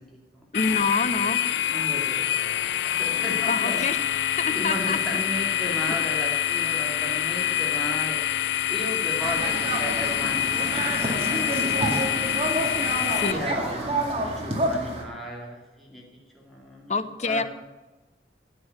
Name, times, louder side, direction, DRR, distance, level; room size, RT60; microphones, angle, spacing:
voice 1, 0.0-0.4 1.7-2.4 2.8-3.8 4.4-8.2 8.7-12.3 13.3-17.4, equal, ahead, -3 dB, 2.6 m, -35 dB
sound 1, 0.5-13.3, left 11 dB, 70° left, 0.4 m, -26 dB
voice 2, 0.5-1.4 3.5-4.0 4.4-5.0 5.8-5.9 13.2-13.4 16.9-17.4, left 4 dB, 40° left, 11 dB, 0.7 m, -26 dB
sound 2, 9.2-15.0, right 1 dB, 35° right, 2.2 m, -28 dB
9.6 x 8.5 x 8.4 m, 1.2 s
head